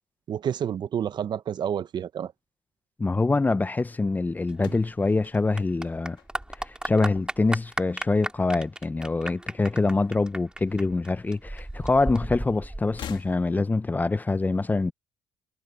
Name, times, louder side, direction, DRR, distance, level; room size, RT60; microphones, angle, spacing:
voice 1, 0.3-2.3, right 9 dB, 50° right, 1.0 m, -29 dB
voice 2, 3.0-6.2 6.6-14.9, left 3 dB, 20° left, 0.8 m, -25 dB
sound 1, 4.5-6.9 7.2-7.8 8.8-9.8 10.1-10.2 11.3-11.4 12.8-13.8, left 9 dB, 55° left, 2.5 m, -45 dB
Clapping / Applause, 4.5-13.5, right 1 dB, 10° right, 5.1 m, -36 dB
supercardioid pair, 75°, 9 cm